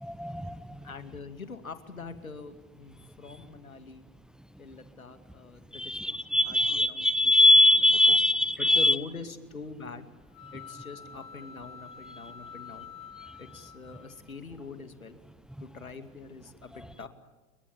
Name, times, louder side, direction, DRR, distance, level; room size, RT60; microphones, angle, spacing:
voice 1, 0.0-0.9 5.7-9.0, left 1 dB, ahead, 15 dB, 1.0 m, -22 dB
voice 2, 0.8-4.0 4.6-7.3 8.1-8.2 8.6-10.1 10.5-12.9 13.4-15.2 15.6-17.1, left 4 dB, 85° left, 10 dB, 2.5 m, -44 dB
sound 1, 10.3-14.4, left 6 dB, 40° left, 5.1 m, -48 dB
29.5 x 24.0 x 7.4 m, 1.2 s
figure-of-eight pair, 90°, 41 cm